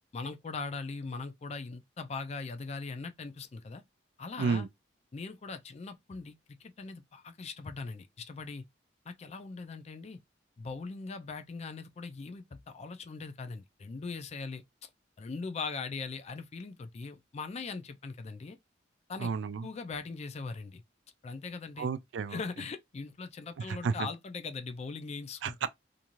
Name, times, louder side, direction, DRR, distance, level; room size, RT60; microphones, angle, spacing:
voice 1, 0.1-3.8 4.2-4.7 5.1-6.3 6.6-8.6 9.1-10.2 10.6-14.6 15.2-18.6 19.1-19.3 19.6-20.8 21.2-21.9 22.3-25.7, left 4 dB, 35° left, 0.4 m, -40 dB
voice 2, 4.4-4.7 19.2-19.7 21.8-22.4 23.6-24.1 25.4-25.7, right 5 dB, 85° right, 0.3 m, -32 dB
2.6 x 2.4 x 3.0 m
head